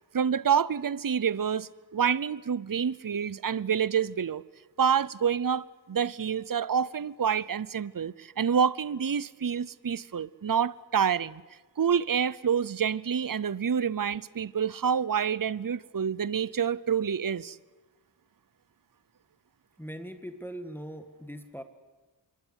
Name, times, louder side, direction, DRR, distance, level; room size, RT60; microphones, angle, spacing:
voice 1, 0.1-4.4 4.8-11.4 11.8-17.6, right 7 dB, 50° right, 0.7 m, -27 dB
voice 2, 19.8-21.6, equal, 5° left, 1.8 m, -40 dB
26.0 x 22.0 x 8.2 m
wide cardioid pair, 60°, 44 cm